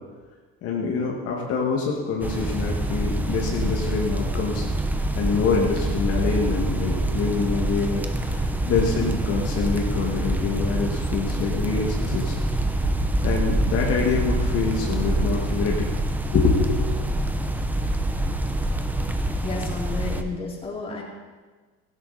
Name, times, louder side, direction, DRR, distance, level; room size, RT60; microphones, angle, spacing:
voice 1, 0.6-4.7 5.2-12.4 13.2-15.9 16.3-16.9, left 5 dB, 45° left, -1 dB, 2.1 m, -25 dB
sound 1, 2.2-20.2, right 1 dB, 5° right, 0.8 m, -25 dB
voice 2, 19.4-21.0, left 3 dB, 15° left, -2 dB, 3.0 m, -32 dB
16.5 x 16.0 x 4.3 m, 1.4 s
cardioid pair, 145°, 32 cm